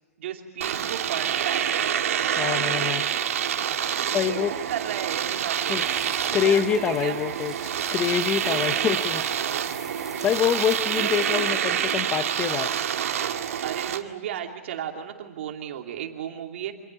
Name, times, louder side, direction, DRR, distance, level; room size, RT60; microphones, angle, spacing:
voice 1, 0.2-1.7 2.4-2.8 4.0-5.8 6.2-7.2 8.4-9.7 10.9-11.6 13.6-16.7, right 10 dB, 50° right, 3 dB, 2.8 m, -34 dB
Domestic sounds home sounds, 0.6-14.0, right 9 dB, 65° right, 2.1 m, -27 dB
voice 2, 2.4-3.0 4.1-4.5 5.7-5.8 6.3-9.2 10.2-12.7, left 9 dB, 15° left, 9 dB, 0.7 m, -25 dB
sound 1, 5.6-12.1, right 3 dB, 5° right, 1.3 m, -43 dB
26.5 x 19.0 x 9.9 m, 1.2 s
hypercardioid pair, 160°, 8 cm